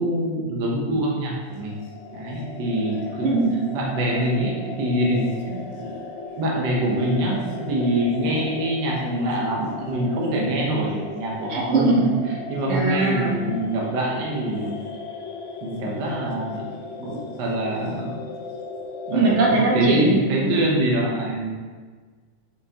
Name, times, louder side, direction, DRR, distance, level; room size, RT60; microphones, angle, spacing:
voice 1, 0.0-1.7 2.1-3.4 3.7-6.0 6.4-12.0 12.3-14.8 15.6-16.7 17.0-18.2 19.1-21.5, right 1 dB, 90° right, -3 dB, 0.9 m, -25 dB
sound 1, 1.4-19.6, left 4 dB, 75° left, 2.0 m, -37 dB
voice 2, 3.1-3.5 11.5-12.1 12.7-13.4 19.1-20.3, right 2 dB, 65° right, -3 dB, 1.4 m, -20 dB
8.2 x 4.3 x 2.9 m, 1.4 s
omnidirectional pair, 3.6 m